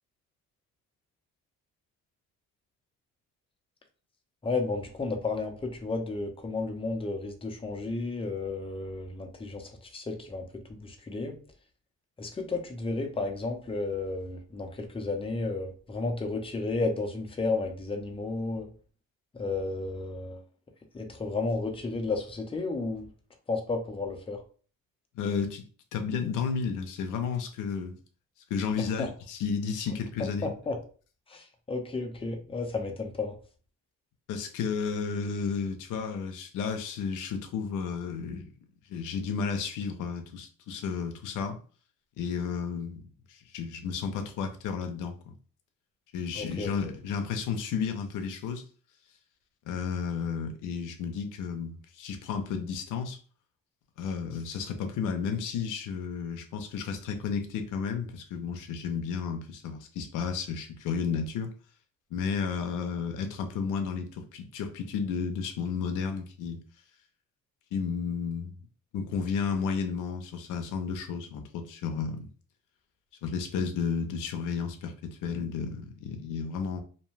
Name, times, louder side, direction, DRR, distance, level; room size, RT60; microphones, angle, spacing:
voice 1, 4.4-10.4 10.7-11.4 12.2-18.7 19.3-20.4 20.9-23.1 23.5-24.4 28.8-29.1 30.4-30.8 31.3-33.4 46.4-46.7, left 3 dB, 20° left, 0.6 m, -32 dB
voice 2, 25.1-25.6 25.9-28.0 28.5-30.5 34.3-38.5 38.9-41.6 42.2-45.3 46.1-48.6 49.7-53.2 54.0-61.5 62.1-66.6 67.7-68.5 68.9-72.3 73.2-76.8, left 6 dB, 90° left, 0.6 m, -32 dB
2.6 x 2.2 x 3.1 m
cardioid pair, 90°, 30 cm